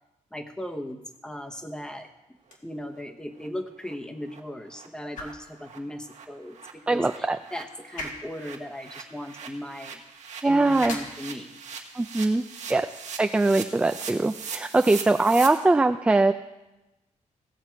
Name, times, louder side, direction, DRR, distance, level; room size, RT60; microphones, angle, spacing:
voice 1, 0.3-2.1 2.6-10.0 10.4-11.6, left 1 dB, 5° left, 5 dB, 0.9 m, -37 dB
sound 1, 2.3-14.4, left 2 dB, 80° left, 1.9 m, -46 dB
sound 2, 2.5-2.6 2.9-3.0 3.4-3.5 3.8-3.9 4.3-4.4 4.7-4.9 5.2-5.3 5.6-15.5, right 6 dB, 70° right, 1.3 m, -41 dB
voice 2, 6.9-7.4 10.4-11.0 11.9-12.9 13.2-16.3, right 2 dB, 10° right, 8 dB, 0.3 m, -22 dB
16.0 x 7.3 x 4.6 m, 1.0 s
wide cardioid pair, 135°, 13 cm